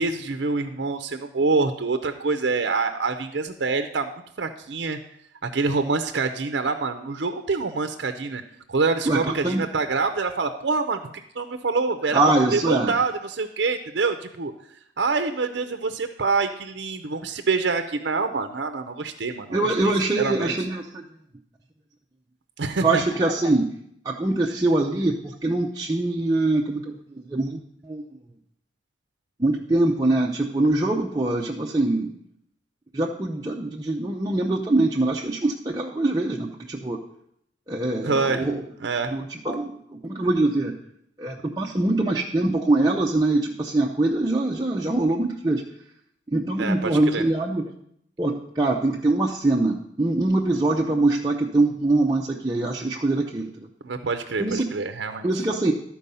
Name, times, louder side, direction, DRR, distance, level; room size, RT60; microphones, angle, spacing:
voice 1, 0.0-4.1 4.4-5.0 5.4-8.4 8.7-12.2 12.5-14.5 15.0-19.7 20.2-20.5 22.6-23.0 38.0-38.5 38.8-39.1 46.6-47.2 53.8-55.3, right 4 dB, 65° right, 7 dB, 0.6 m, -26 dB
voice 2, 9.0-9.6 12.1-13.0 19.5-21.0 22.8-23.7 24.0-28.0 29.4-32.1 32.9-37.0 37.7-38.6 39.1-40.8 41.2-45.6 46.3-47.7 48.2-53.7 54.4-54.7 55.2-55.7, right 2 dB, 20° right, -2 dB, 0.6 m, -23 dB
12.5 x 4.6 x 5.4 m, 0.72 s
head